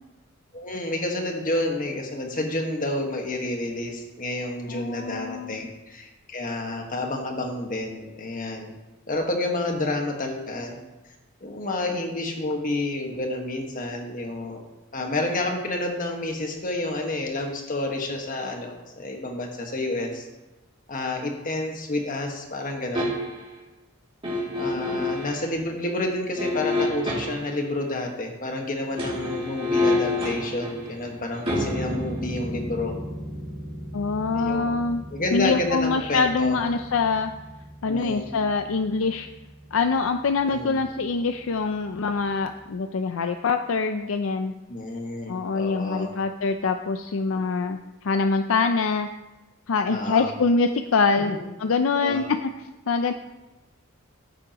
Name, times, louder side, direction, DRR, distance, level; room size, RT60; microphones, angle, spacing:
voice 1, 0.5-8.7 9.1-10.8 11.4-14.6 14.9-20.2 20.9-23.1 24.5-32.9 34.3-34.8 35.1-36.6 37.9-38.3 40.4-40.8 44.7-46.1 47.3-47.4 49.9-50.3 51.2-51.4 52.0-52.3, left 2 dB, 40° left, 2 dB, 1.5 m, -29 dB
voice 2, 4.7-5.6 33.9-35.0 35.3-37.3 37.8-39.3 39.7-44.5 45.3-49.1 49.7-53.1, left 4 dB, 65° left, 7 dB, 0.5 m, -24 dB
sound 1, 22.9-23.5 24.2-25.4 26.4-27.6 28.8-39.8 40.1-40.2, left 1 dB, 25° right, 2.5 m, -30 dB
14.0 x 8.2 x 3.0 m, 1.1 s
head